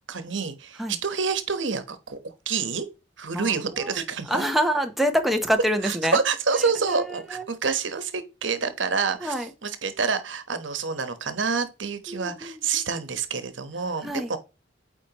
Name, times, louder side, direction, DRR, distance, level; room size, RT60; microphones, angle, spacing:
voice 1, 0.1-2.9 3.2-4.4 5.8-14.4, right 5 dB, 75° right, 1.1 m, -28 dB
voice 2, 3.3-3.9 4.3-6.2 6.9-7.4 9.2-9.5 12.1-12.7 14.0-14.3, equal, ahead, 0.8 m, -26 dB
8.9 x 4.4 x 2.9 m
head